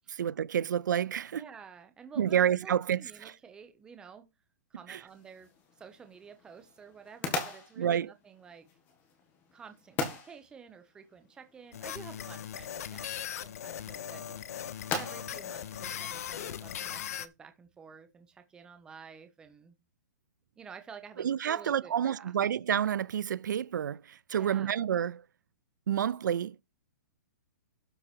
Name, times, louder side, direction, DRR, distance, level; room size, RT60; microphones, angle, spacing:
voice 1, 0.1-1.5 2.2-3.3 4.9-5.0 7.8-8.1 21.2-25.2 25.9-26.6, right 9 dB, 90° right, 0.4 m, -29 dB
voice 2, 1.3-4.3 4.7-5.5 5.8-8.7 9.5-13.1 13.4-14.3 14.9-19.8 20.6-22.3 24.3-24.8, right 6 dB, 10° right, 0.9 m, -51 dB
sound 1, 5.1-16.8, left 4 dB, 20° left, 1.7 m, -42 dB
sound 2, 11.7-17.3, left 10 dB, 55° left, 0.9 m, -39 dB
12.5 x 4.8 x 4.5 m
hypercardioid pair, 170°, 10 cm